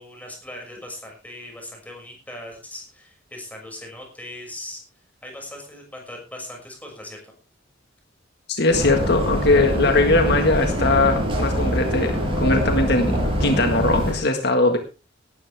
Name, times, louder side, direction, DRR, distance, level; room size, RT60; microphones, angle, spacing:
voice 1, 0.0-4.8 5.2-7.3, left 1 dB, 10° left, 0 dB, 6.3 m, -39 dB
voice 2, 8.5-14.8, left 2 dB, 55° left, 5 dB, 1.7 m, -20 dB
sound 1, 8.7-14.1, equal, 25° right, 7.9 m, -24 dB
18.0 x 13.0 x 3.5 m, 0.33 s
head